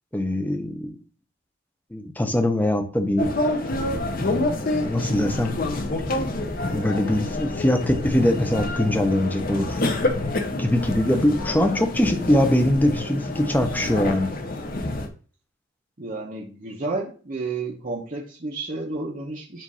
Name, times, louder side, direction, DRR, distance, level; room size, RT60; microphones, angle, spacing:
voice 1, 0.1-1.0 1.9-3.3 4.2-5.6 6.6-9.8 10.6-14.3, left 1 dB, 10° left, 6 dB, 0.6 m, -22 dB
sound 1, 3.2-15.1, left 2 dB, 45° left, 0.8 m, -27 dB
voice 2, 16.0-19.6, right 3 dB, 40° right, -2 dB, 0.8 m, -31 dB
7.4 x 2.6 x 5.4 m, 0.39 s
head